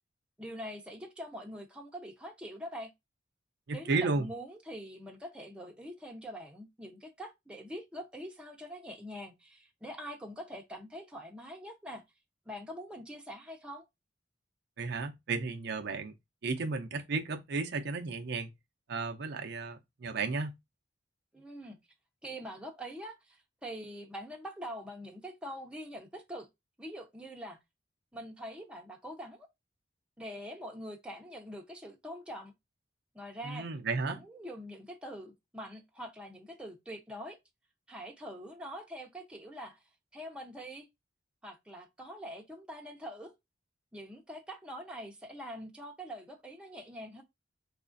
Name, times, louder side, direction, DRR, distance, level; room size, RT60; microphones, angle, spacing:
voice 1, 0.4-2.9 3.7-12.0 12.5-13.8 21.3-21.8 22.2-26.5 26.8-27.6 28.1-29.5 30.2-32.5 33.1-33.7 34.1-37.4 37.9-39.8 40.1-40.9 41.4-43.3 43.9-47.2, equal, 5° right, 0.6 m, -44 dB
voice 2, 3.7-4.3 14.8-16.1 16.4-18.5 18.9-20.5 33.4-34.2, right 3 dB, 60° right, 0.5 m, -33 dB
4.8 x 2.4 x 2.5 m
head